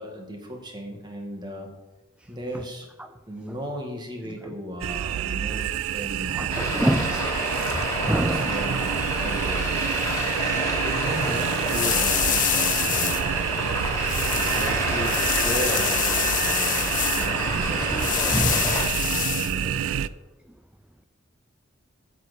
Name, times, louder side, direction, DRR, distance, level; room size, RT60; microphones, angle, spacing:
voice 1, 0.0-1.7 2.3-2.9 3.3-7.1 8.0-9.7 10.8-13.2 14.3-18.6 19.0-20.1, equal, 20° right, 1.9 m, -36 dB
sound 1, 4.8-20.1, right 10 dB, 80° right, 0.3 m, -28 dB
voice 2, 6.4-7.3 7.6-8.5 17.9-18.7 19.0-19.1, right 1 dB, 5° right, 0.4 m, -27 dB
Traffic noise roadway noise, 6.5-18.8, left 1 dB, 15° left, 2.8 m, -29 dB
sound 2, 10.9-20.1, left 11 dB, 40° left, 0.6 m, -28 dB
8.2 x 6.5 x 8.1 m
head